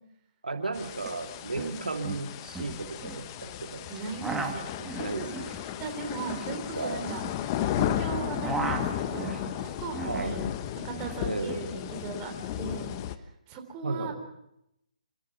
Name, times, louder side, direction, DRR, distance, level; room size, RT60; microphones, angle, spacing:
voice 1, 0.4-3.9 4.8-5.2 6.7-7.1 10.1-10.4 11.2-11.7 13.8-14.1, right 3 dB, 85° right, 5 dB, 2.5 m, -34 dB
sound 1, 0.7-13.1, left 11 dB, 30° left, 1.1 m, -34 dB
sound 2, 1.0-1.1 1.4-1.7 2.0-3.2 3.9-7.9 8.2-10.4 10.7-11.6, right 3 dB, 5° right, 2.0 m, -36 dB
voice 2, 1.5-1.9 3.9-4.7 5.0-7.2 7.8-10.5 10.8-14.1, right 5 dB, 25° right, 4 dB, 3.9 m, -38 dB
27.5 x 14.5 x 6.8 m, 0.81 s
figure-of-eight pair, 145°, 4 cm